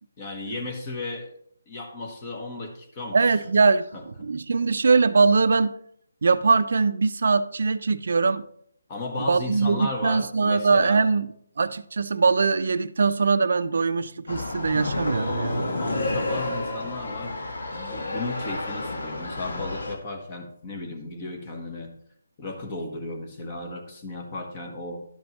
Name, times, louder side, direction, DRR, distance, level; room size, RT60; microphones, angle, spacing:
voice 1, 0.2-1.3 1.7-3.2 3.9-4.0 8.9-11.0 15.8-21.9 22.4-25.0, left 2 dB, 25° left, 3 dB, 1.3 m, -35 dB
voice 2, 3.1-5.7 6.2-8.4 9.2-11.3 11.6-15.7, right 4 dB, 60° right, 13 dB, 0.5 m, -22 dB
sound 1, 14.3-19.9, left 2 dB, 70° left, 1.4 m, -30 dB
12.0 x 5.1 x 3.1 m, 0.67 s
hypercardioid pair, 160°, 0 cm